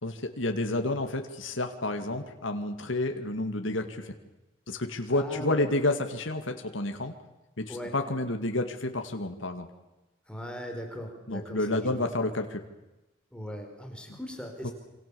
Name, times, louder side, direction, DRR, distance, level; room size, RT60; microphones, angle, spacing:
voice 1, 0.0-4.2 4.7-7.1 7.6-9.7 11.3-12.6 14.1-14.2 14.6-14.7, left 2 dB, 75° left, 5 dB, 2.3 m, -30 dB
voice 2, 5.1-5.7 7.7-7.9 10.3-12.1 13.3-14.7, equal, 5° left, 3 dB, 4.4 m, -39 dB
27.5 x 26.0 x 7.1 m, 0.99 s
head